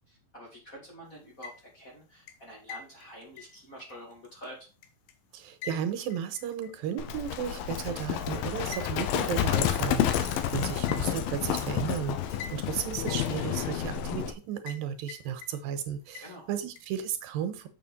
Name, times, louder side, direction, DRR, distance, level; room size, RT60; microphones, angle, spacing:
voice 1, 0.1-4.6 10.4-10.6 16.2-16.5, equal, 30° left, -2 dB, 2.1 m, -47 dB
sound 1, 1.2-1.9 2.3-5.1 5.6-6.9 7.3-7.4 8.7-8.9 9.3-9.4 9.9-10.0 10.9-11.4 12.4-12.8 13.1-14.0 14.7-14.8 15.1-15.8 16.1-16.8, left 6 dB, 70° left, 2.5 m, -45 dB
voice 2, 5.3-17.7, right 9 dB, 90° right, 9 dB, 2.8 m, -34 dB
Livestock farm animals working animals, 7.0-14.3, left 10 dB, 85° left, 2.5 m, -30 dB
7.1 x 6.7 x 4.2 m, 0.31 s
omnidirectional pair, 4.1 m